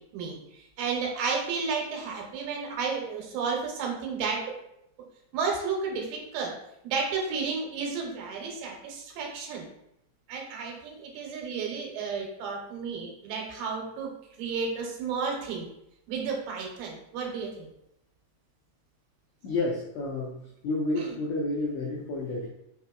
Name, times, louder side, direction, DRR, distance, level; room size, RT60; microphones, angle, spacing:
voice 1, 0.1-4.5 5.3-6.5 6.8-9.7 10.3-14.1 14.4-15.7 16.1-17.7 21.0-21.1, right 5 dB, 85° right, 0 dB, 2.5 m, -32 dB
voice 2, 19.4-20.4 20.6-22.5, left 2 dB, 85° left, -5 dB, 1.6 m, -30 dB
5.3 x 2.8 x 2.3 m, 0.78 s
omnidirectional pair, 3.9 m